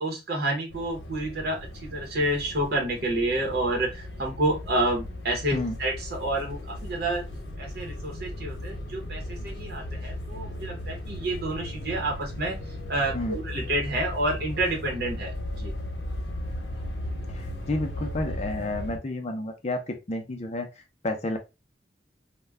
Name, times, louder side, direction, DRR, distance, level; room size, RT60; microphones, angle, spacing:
voice 1, 0.0-7.2 7.6-12.6 12.9-15.3 15.6-15.7, right 1 dB, 60° right, -1 dB, 0.8 m, -29 dB
sound 1, 0.7-19.0, left 1 dB, 80° left, 0.8 m, -36 dB
voice 2, 17.3-21.4, left 2 dB, 35° left, 4 dB, 0.5 m, -31 dB
2.2 x 2.1 x 3.3 m, 0.26 s
head